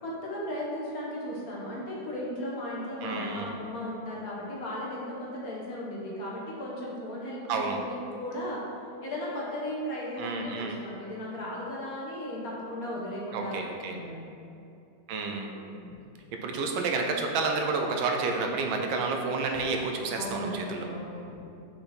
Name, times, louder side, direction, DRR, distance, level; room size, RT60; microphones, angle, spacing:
voice 1, 0.0-8.6 9.0-14.2 15.6-15.8 20.1-21.4, left 1 dB, 50° left, -4 dB, 1.4 m, -36 dB
voice 2, 3.0-3.5 7.5-7.8 10.2-10.8 13.3-14.0 15.1-15.5 16.3-20.9, right 4 dB, 80° right, 3 dB, 1.5 m, -30 dB
5.8 x 5.4 x 4.2 m, 2.7 s
omnidirectional pair, 2.2 m